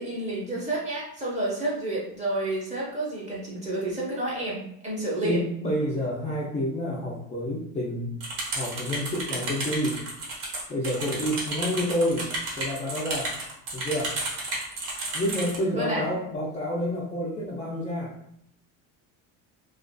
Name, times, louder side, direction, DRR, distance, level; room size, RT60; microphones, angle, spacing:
voice 1, 0.0-5.4 15.7-16.0, right 2 dB, 20° right, -5 dB, 0.8 m, -30 dB
voice 2, 5.2-8.2 8.5-10.0 10.7-13.3 13.7-14.2 15.1-18.1, equal, 20° left, -6 dB, 0.4 m, -29 dB
sound 1, 8.2-15.6, right 2 dB, 60° right, 1.0 m, -32 dB
2.5 x 2.4 x 2.2 m, 0.72 s
cardioid pair, 130°, 36 cm